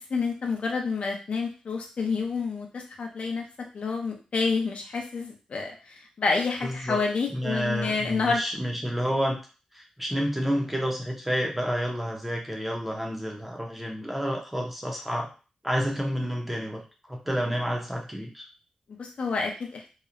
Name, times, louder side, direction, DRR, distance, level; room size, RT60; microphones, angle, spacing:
voice 1, 0.1-8.4 19.0-19.8, left 4 dB, 60° left, 2 dB, 0.5 m, -29 dB
voice 2, 6.6-7.0 7.3-9.4 9.7-15.3 15.6-16.8 17.1-18.5, equal, 5° right, 0 dB, 0.5 m, -29 dB
2.8 x 2.0 x 2.4 m, 0.34 s
wide cardioid pair, 145°, 2 cm